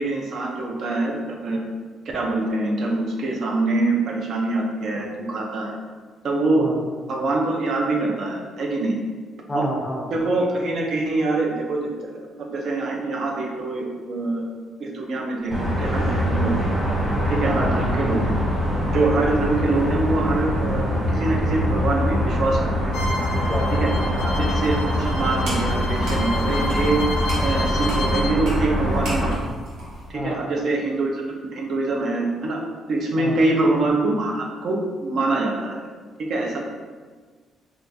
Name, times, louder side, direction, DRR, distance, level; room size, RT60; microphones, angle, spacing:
voice 1, 0.0-1.6 2.1-5.8 6.2-6.7 7.1-9.0 9.5-9.7 10.1-14.5 14.8-16.6 17.3-18.3 18.9-23.0 23.8-23.9 24.2-27.0 27.4-29.4 30.1-31.2 31.5-32.6 32.9-35.9 36.2-36.6, right 2 dB, 55° right, 0 dB, 0.5 m, -24 dB
voice 2, 6.6-6.9 9.5-10.1 17.5-17.8 23.3-23.7 23.9-24.2 30.1-30.5 33.2-33.4, equal, 15° left, 0 dB, 0.5 m, -30 dB
sound 1, 15.5-29.3, equal, 15° right, 1.2 m, -23 dB
Bowed string instrument, 22.9-28.3, left 2 dB, 85° left, 0.4 m, -31 dB
sound 2, 24.9-30.1, right 1 dB, 80° right, 1.0 m, -38 dB
3.6 x 2.3 x 2.6 m, 1.5 s
cardioid pair, 145°, 0 cm